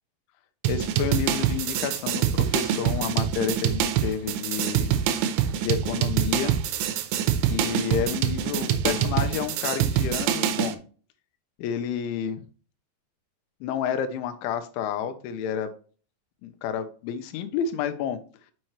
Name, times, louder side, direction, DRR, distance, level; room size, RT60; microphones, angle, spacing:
sound 1, 0.6-10.7, right 9 dB, 85° right, 3.1 m, -25 dB
voice 1, 0.7-5.0 5.6-6.6 7.5-10.8 11.6-12.4 13.6-15.7 16.4-18.2, left 8 dB, 80° left, 9 dB, 3.2 m, -30 dB
6.6 x 6.1 x 3.0 m, 0.40 s
omnidirectional pair, 5.5 m